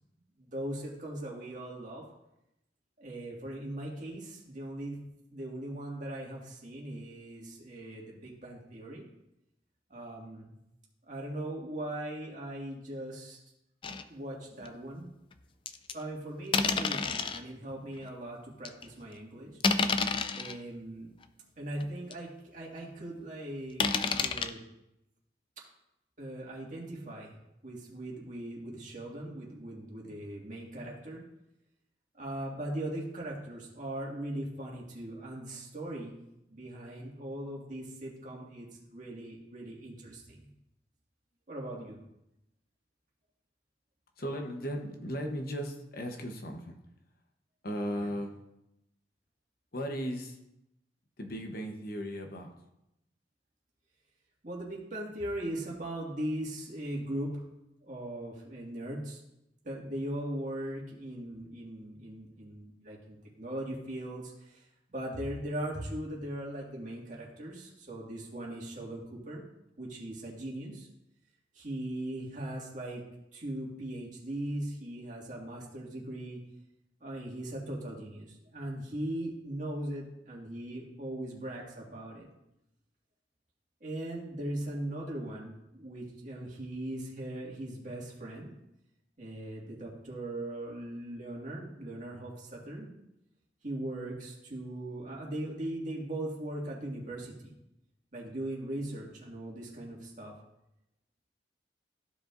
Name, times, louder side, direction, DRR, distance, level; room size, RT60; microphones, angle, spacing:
voice 1, 0.4-2.0 3.0-5.0 5.3-9.0 9.9-10.5 11.1-13.4 14.0-15.1 15.9-19.6 20.3-21.1 21.6-23.8 24.2-24.6 26.2-27.4 27.6-31.2 32.1-36.2 36.5-40.5 41.5-42.0 54.4-57.4 57.8-59.2 59.6-64.6 64.9-69.4 69.8-70.9 71.5-73.0 73.3-76.4 77.0-82.3 83.8-88.5 89.2-92.9 93.6-97.5 98.1-100.3, right 1 dB, 45° right, -3 dB, 2.0 m, -39 dB
sound 1, 13.8-14.0 14.6-14.7 15.7-15.9 16.5-17.4 18.0-18.1 18.6-18.8 19.6-20.5 21.2-21.3 21.8-21.9 22.1-22.2 23.8-24.5, left 4 dB, 30° left, 0.4 m, -29 dB
voice 2, 44.2-46.8 47.6-48.4 49.7-50.4 51.2-52.5, equal, 55° left, 3 dB, 1.0 m, -36 dB
14.0 x 5.0 x 2.6 m, 0.85 s
head